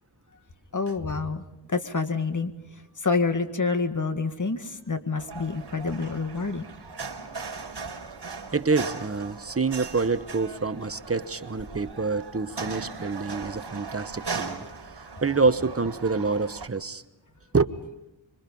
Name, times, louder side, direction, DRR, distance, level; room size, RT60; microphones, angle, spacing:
voice 1, 0.7-6.6 9.3-9.4, left 4 dB, 40° left, 8 dB, 2.0 m, -28 dB
sound 1, 5.2-16.7, right 4 dB, 60° right, 4.4 m, -38 dB
voice 2, 8.5-14.7 15.2-17.0 17.5-17.7, right 4 dB, 30° right, 11 dB, 1.1 m, -26 dB
26.0 x 24.5 x 5.5 m, 0.91 s
wide cardioid pair, 80°, 46 cm